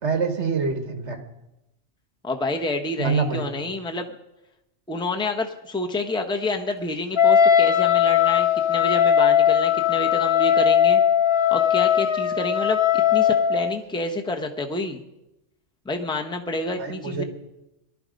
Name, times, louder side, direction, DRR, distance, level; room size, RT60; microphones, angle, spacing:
voice 1, 0.0-1.2 3.0-3.4 16.8-17.2, right 5 dB, 60° right, 7 dB, 1.8 m, -25 dB
voice 2, 2.2-4.1 4.9-11.0 11.5-12.8 13.1-15.0 15.8-17.2, left 2 dB, 5° left, 3 dB, 0.9 m, -28 dB
Wind instrument woodwind instrument, 7.2-13.8, left 9 dB, 35° left, 0.5 m, -19 dB
18.5 x 12.0 x 5.2 m, 0.93 s
omnidirectional pair, 1.3 m